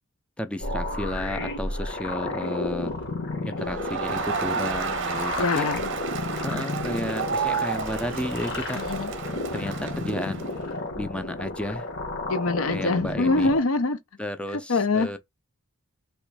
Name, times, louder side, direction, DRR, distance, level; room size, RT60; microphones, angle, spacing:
voice 1, 0.4-2.9 3.4-5.7 6.4-8.8 9.5-11.9 12.7-13.6 14.2-15.2, left 1 dB, 5° left, 0.4 m, -33 dB
sound 1, 0.6-13.6, left 2 dB, 50° left, 1.1 m, -32 dB
Crowd, 3.6-10.7, right 6 dB, 55° right, 0.7 m, -31 dB
voice 2, 5.4-5.9 8.7-9.1 12.3-14.0 14.7-15.1, left 3 dB, 70° left, 0.7 m, -24 dB
3.1 x 3.0 x 4.7 m
head